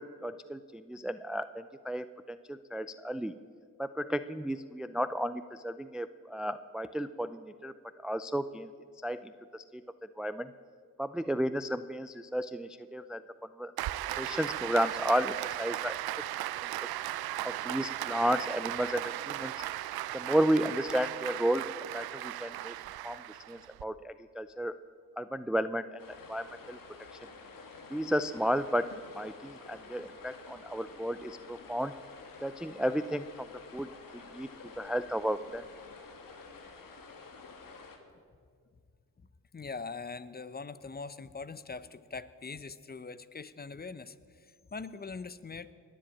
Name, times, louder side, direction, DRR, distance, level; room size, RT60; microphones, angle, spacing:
voice 1, 0.0-3.3 3.8-7.7 8.0-8.7 9.0-9.8 10.2-10.5 11.0-13.2 13.6-13.7 14.2-16.0 17.4-19.6 20.1-21.6 21.9-22.7 23.0-24.8 25.2-26.8 27.9-32.0 32.4-34.5 34.8-35.7, equal, ahead, 13 dB, 0.4 m, -33 dB
Applause, 13.8-23.8, right 14 dB, 85° right, 0.6 m, -37 dB
sound 1, 26.0-38.0, left 4 dB, 65° left, 2.1 m, -50 dB
voice 2, 39.5-45.7, left 4 dB, 25° left, 15 dB, 0.7 m, -42 dB
20.0 x 7.8 x 8.7 m, 2.1 s
cardioid pair, 65°, 36 cm